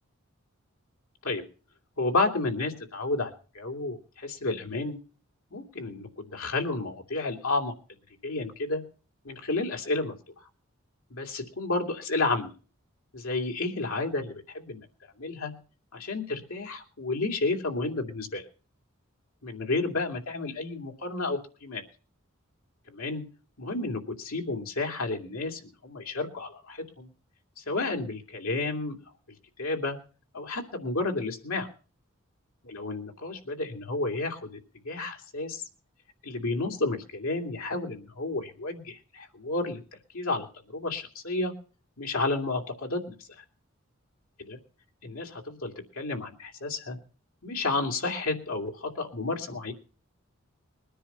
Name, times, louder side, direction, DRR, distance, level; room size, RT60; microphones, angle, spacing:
voice 1, 2.0-5.0 5.5-7.7 8.2-8.8 9.2-10.1 11.1-12.5 13.1-14.9 15.2-15.5 15.9-18.4 19.4-21.8 22.9-23.2 23.6-27.1 27.6-28.9 29.6-30.0 30.3-31.7 32.6-34.6 34.8-35.6 36.2-39.8 40.1-41.5 42.0-43.4 44.4-44.6 45.0-47.0 47.4-49.7, left 3 dB, 85° left, 3 dB, 2.6 m, -31 dB
21.0 x 10.0 x 5.5 m, 0.39 s
head